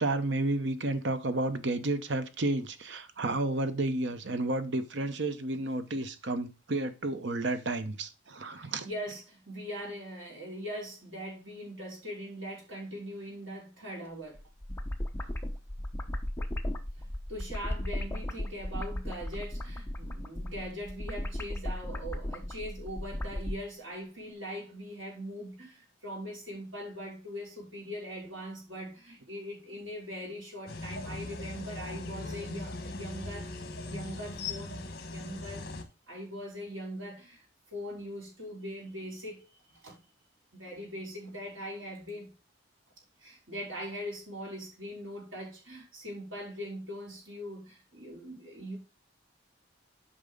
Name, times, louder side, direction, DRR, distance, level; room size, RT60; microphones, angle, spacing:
voice 1, 0.0-8.9, right 2 dB, 65° right, 0.9 m, -31 dB
voice 2, 8.4-14.4 17.0-35.7 36.1-40.0 40.5-42.3 43.2-48.8, equal, 85° right, 5.0 m, -41 dB
sound 1, 14.3-23.6, left 1 dB, 10° left, 0.8 m, -36 dB
sound 2, 30.7-35.8, left 2 dB, 55° left, 1.5 m, -39 dB
8.6 x 5.5 x 3.8 m
head